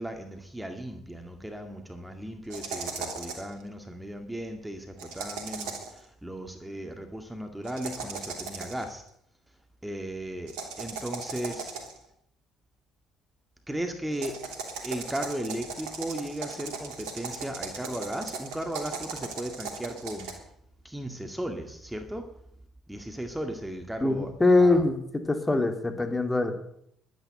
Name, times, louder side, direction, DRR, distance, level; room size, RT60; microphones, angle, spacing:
voice 1, 0.0-9.0 9.8-11.8 13.7-14.4 14.8-20.3 20.8-22.2 22.9-24.3 24.6-24.9, right 1 dB, 5° right, 5 dB, 2.1 m, -36 dB
sound 1, 2.5-3.5 5.0-6.0 7.6-8.9 10.5-12.0 14.1-20.3, right 4 dB, 70° right, 3.1 m, -37 dB
voice 2, 24.0-25.0 25.3-26.6, left 2 dB, 20° left, 6 dB, 2.7 m, -23 dB
12.0 x 10.0 x 8.1 m, 0.71 s
hypercardioid pair, 55°, 0 cm